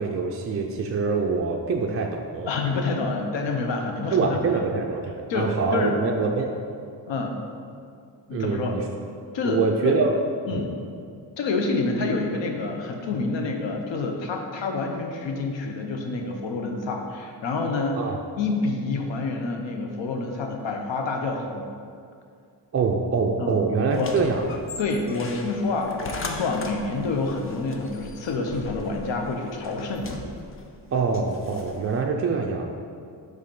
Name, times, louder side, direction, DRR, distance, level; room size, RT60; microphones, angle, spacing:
voice 1, 0.0-2.5 4.1-6.5 8.3-8.8 9.4-10.1 10.5-10.7 18.0-18.2 22.7-24.5 30.9-32.7, right 4 dB, 35° right, 1 dB, 0.4 m, -25 dB
voice 2, 2.5-4.6 5.3-6.0 7.1-7.3 8.3-8.8 9.3-10.0 10.5-10.7 11.4-18.0 18.4-21.7 23.4-23.6 23.9-24.1 24.8-30.2, left 3 dB, 90° left, 3 dB, 0.9 m, -28 dB
sound 1, 23.9-32.0, left 3 dB, 30° left, 0.5 m, -39 dB
5.4 x 3.9 x 5.4 m, 2.3 s
wide cardioid pair, 125°, 43 cm